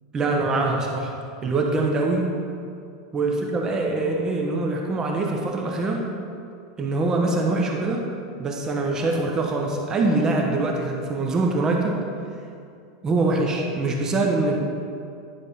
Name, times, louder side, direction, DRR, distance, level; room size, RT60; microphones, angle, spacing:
voice 1, 0.1-2.3 3.1-6.1 6.8-8.1 8.4-12.0 13.0-14.6, right 2 dB, 20° right, 1 dB, 0.8 m, -24 dB
10.5 x 3.5 x 5.5 m, 2.4 s
supercardioid pair, 140°, 3 cm